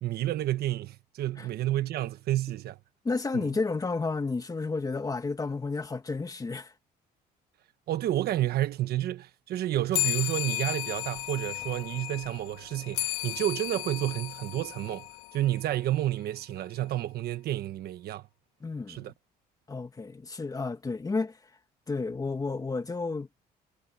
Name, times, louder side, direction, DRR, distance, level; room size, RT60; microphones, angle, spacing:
voice 1, 0.0-2.8 3.3-3.5 7.9-15.1 15.3-18.2 18.9-19.1, right 13 dB, 65° right, 1.3 m, -30 dB
voice 2, 3.0-6.7 18.6-19.1 19.7-21.4 21.9-23.3, left 3 dB, 20° left, 2.1 m, -31 dB
sound 1, 9.9-15.8, left 21 dB, 90° left, 1.9 m, -34 dB
cardioid pair, 110°, 17 cm